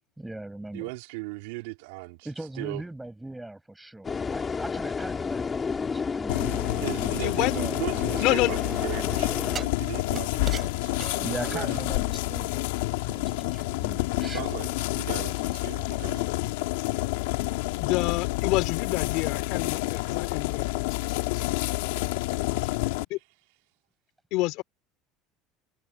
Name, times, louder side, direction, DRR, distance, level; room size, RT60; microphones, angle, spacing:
voice 1, 0.2-0.9 2.2-7.8 8.1-8.2 11.2-12.7 13.0-14.5, right 1 dB, 5° right, 7.2 m, -39 dB
voice 2, 0.7-2.3 2.6-2.8 6.8-11.7 14.2-16.3, right 24 dB, 85° right, 3.5 m, -38 dB
sound 1, 4.0-9.6, left 5 dB, 20° left, 2.4 m, -31 dB
sound 2, 6.3-23.0, left 20 dB, 90° left, 2.1 m, -29 dB
voice 3, 7.2-7.5 8.2-8.5 17.8-22.1 23.1-23.2 24.3-24.6, left 20 dB, 65° left, 2.9 m, -29 dB
sound 3, 7.5-8.7 9.5-11.9 12.3-12.4, right 7 dB, 30° right, 5.7 m, -40 dB
supercardioid pair, 125°, 0 cm